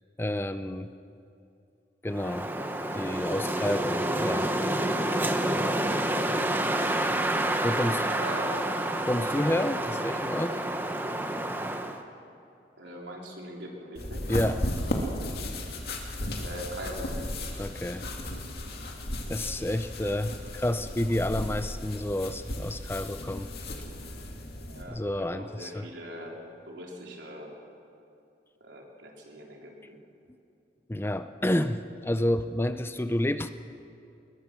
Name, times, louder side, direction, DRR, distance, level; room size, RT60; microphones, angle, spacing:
voice 1, 0.2-0.9 2.0-2.5 2.9-4.5 7.6-8.1 9.0-10.6 14.3-14.6 17.6-18.1 19.3-23.5 24.9-25.9 30.9-33.5, left 1 dB, 10° left, 10 dB, 0.5 m, -29 dB
Wind, 2.1-12.0, right 1 dB, 10° right, 1.0 m, -28 dB
voice 2, 7.7-8.7 12.8-14.2 16.3-17.1 24.6-25.0 25.3-26.4 26.7-27.5 28.6-30.0, right 1 dB, 80° right, -1 dB, 3.9 m, -41 dB
sound 1, 13.9-24.8, left 1 dB, 55° left, 2.5 m, -35 dB
21.5 x 21.0 x 6.2 m, 2.6 s
head